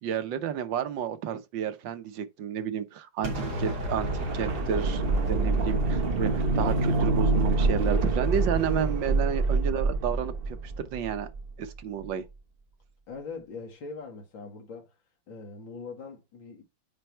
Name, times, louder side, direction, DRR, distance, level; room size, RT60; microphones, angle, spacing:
voice 1, 0.0-11.3 11.6-12.2, right 8 dB, 75° right, 1.6 m, -31 dB
Explosion, 3.2-9.2, right 1 dB, 55° right, 3.5 m, -34 dB
sound 1, 4.0-11.7 12.0-12.1, right 3 dB, 35° right, 1.1 m, -27 dB
voice 2, 13.1-14.9 15.3-16.6, left 4 dB, 80° left, 2.6 m, -41 dB
8.9 x 3.4 x 4.4 m
omnidirectional pair, 2.1 m